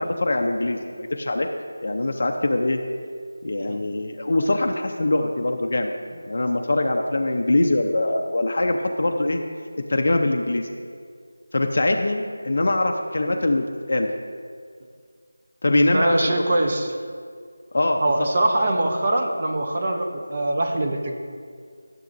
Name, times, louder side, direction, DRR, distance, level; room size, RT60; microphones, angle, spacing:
voice 1, 0.0-1.5 1.8-2.8 3.4-9.4 9.9-10.7 11.5-14.1 15.6-16.4 17.7-18.0, left 2 dB, 45° left, 3 dB, 0.6 m, -23 dB
voice 2, 15.7-16.9 18.0-21.1, right 1 dB, 25° right, 2 dB, 0.7 m, -23 dB
13.5 x 7.6 x 2.6 m, 2.1 s
figure-of-eight pair, 175°, 0 cm